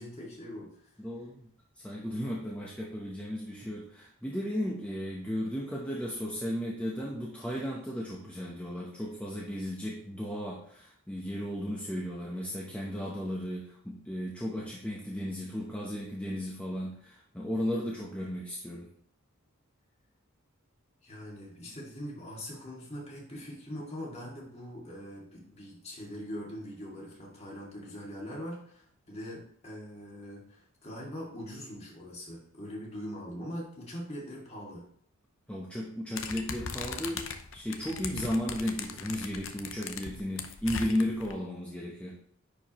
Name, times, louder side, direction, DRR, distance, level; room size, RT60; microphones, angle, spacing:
voice 1, 0.0-0.9 21.0-34.9, equal, 30° left, -3 dB, 2.1 m, -42 dB
voice 2, 1.0-1.5 1.8-18.9 35.5-42.2, equal, 5° left, -3 dB, 0.8 m, -35 dB
sound 1, 36.2-41.3, left 6 dB, 60° left, 0.7 m, -39 dB
10.0 x 4.7 x 3.0 m, 0.65 s
head